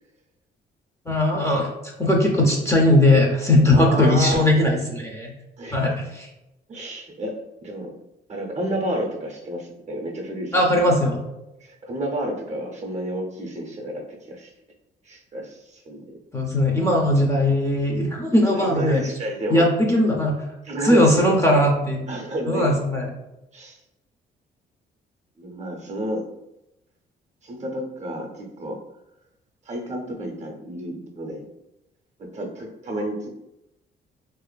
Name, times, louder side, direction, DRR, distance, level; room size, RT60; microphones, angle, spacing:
voice 1, 1.1-5.3 5.7-6.3 10.5-11.2 16.3-19.0 19.5-20.3 20.8-22.0 22.4-23.1, left 1 dB, 15° left, -1 dB, 0.5 m, -19 dB
voice 2, 3.7-4.5 5.6-5.9 6.7-7.4 7.6-7.9 8.3-11.0 11.6-14.5 15.0-16.2 18.5-19.7 20.6-21.5 22.1-22.8 23.5-23.8 25.4-26.3 27.4-28.8 29.7-31.5 32.2-33.3, right 1 dB, 35° right, 1 dB, 0.6 m, -30 dB
2.5 x 2.4 x 2.2 m, 0.91 s
cardioid pair, 90°, 20 cm